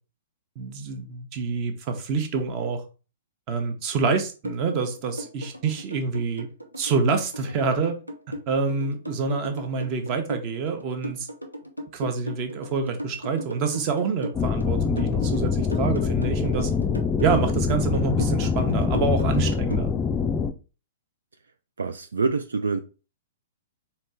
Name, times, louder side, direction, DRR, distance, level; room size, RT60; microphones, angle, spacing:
voice 1, 0.6-2.8 3.5-6.5 6.8-8.0 8.5-11.3 11.9-16.7 17.2-19.9, right 4 dB, 35° right, 0.9 m, -27 dB
sound 1, 4.4-19.8, equal, 90° right, 0.7 m, -36 dB
sound 2, 14.4-20.5, left 5 dB, 15° left, 0.4 m, -24 dB
voice 2, 21.8-22.8, right 4 dB, 70° right, 0.3 m, -26 dB
4.3 x 2.9 x 4.3 m
figure-of-eight pair, 110°, 0 cm